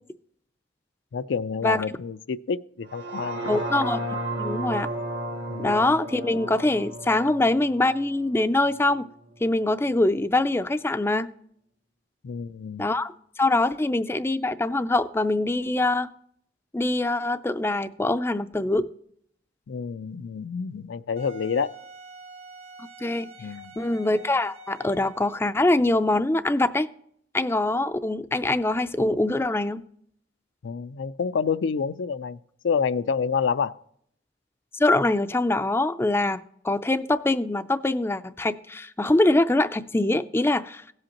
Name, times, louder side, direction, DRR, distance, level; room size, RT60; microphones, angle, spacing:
voice 1, 1.1-3.6 5.5-5.8 12.2-12.8 19.7-21.7 23.4-23.8 30.6-32.4 32.6-33.8, left 6 dB, 80° left, 0.4 m, -28 dB
sound 1, 2.9-9.0 9.4-9.5, right 1 dB, 70° right, 1.6 m, -33 dB
voice 2, 3.5-4.9 5.6-9.1 9.4-11.3 12.8-13.1 13.4-16.1 16.7-18.8 23.0-23.3 23.8-26.9 27.3-29.8 34.7-40.8, left 2 dB, 15° left, 0.4 m, -24 dB
Wind instrument woodwind instrument, 21.2-25.7, right 1 dB, 35° right, 0.7 m, -46 dB
17.5 x 7.8 x 2.9 m
head